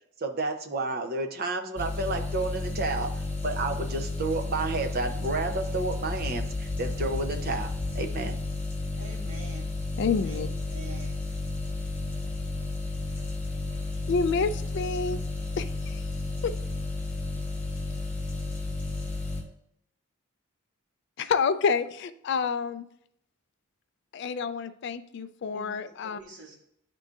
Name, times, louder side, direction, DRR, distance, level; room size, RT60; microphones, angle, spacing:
voice 1, 0.2-8.4, right 3 dB, 45° right, 5 dB, 0.6 m, -31 dB
sound 1, 1.8-19.4, left 3 dB, 10° left, 1.3 m, -32 dB
voice 2, 9.0-9.7 10.2-11.2 25.4-25.8 26.0-26.6, right 3 dB, 75° right, -3 dB, 1.8 m, -45 dB
voice 3, 10.0-10.5 14.1-15.2 15.6-16.0 16.4-16.5 21.3-22.9 24.1-26.2, left 5 dB, 50° left, 12 dB, 0.3 m, -28 dB
10.5 x 3.7 x 2.4 m, 0.75 s
head